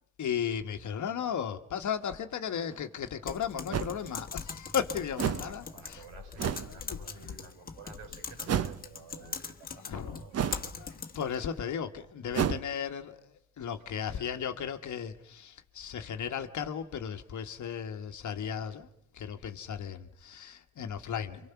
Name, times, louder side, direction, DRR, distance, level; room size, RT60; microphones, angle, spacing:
voice 1, 0.2-5.6 6.9-7.0 9.9-10.1 11.1-21.5, left 8 dB, 35° left, 1.5 m, -35 dB
sound 1, 2.7-2.8 3.7-4.0 5.2-5.5 6.4-6.7 8.5-8.9 10.3-10.7 12.3-12.6, right 8 dB, 30° right, 0.9 m, -30 dB
Typing, 3.3-11.4, left 5 dB, 20° left, 1.5 m, -41 dB
voice 2, 5.4-11.0 11.4-11.6 14.0-14.6, right 5 dB, 75° right, 7.9 m, -52 dB
27.5 x 25.0 x 5.9 m
supercardioid pair, 105°, 48 cm